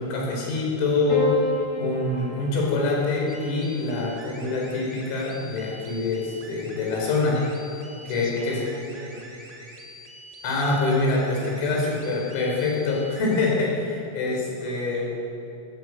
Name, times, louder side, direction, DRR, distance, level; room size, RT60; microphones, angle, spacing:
voice 1, 0.0-1.4 1.8-7.6 8.1-8.6 10.4-15.1, left 3 dB, 85° left, -2 dB, 7.3 m, -25 dB
Piano, 1.1-5.6 6.8-7.4, left 2 dB, 35° left, 6.3 m, -34 dB
sound 1, 3.3-13.5, equal, 40° right, 0.5 m, -45 dB
voice 2, 8.0-9.3 11.4-11.8 14.7-14.8, right 3 dB, 85° right, 0 dB, 5.7 m, -41 dB
20.0 x 20.0 x 7.9 m, 2.8 s
omnidirectional pair, 6.0 m